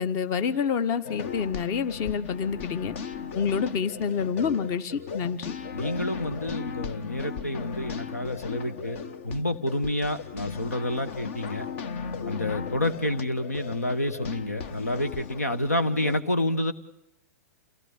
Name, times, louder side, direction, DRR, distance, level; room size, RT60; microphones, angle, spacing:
voice 1, 0.0-2.9 3.3-5.6, left 6 dB, 35° left, 13 dB, 1.4 m, -27 dB
sound 1, 1.0-16.2, left 6 dB, 55° left, 1.3 m, -37 dB
voice 2, 5.7-11.7 12.2-16.7, left 1 dB, 85° left, 12 dB, 1.4 m, -29 dB
28.5 x 17.0 x 8.6 m, 0.85 s
figure-of-eight pair, 105°, 8 cm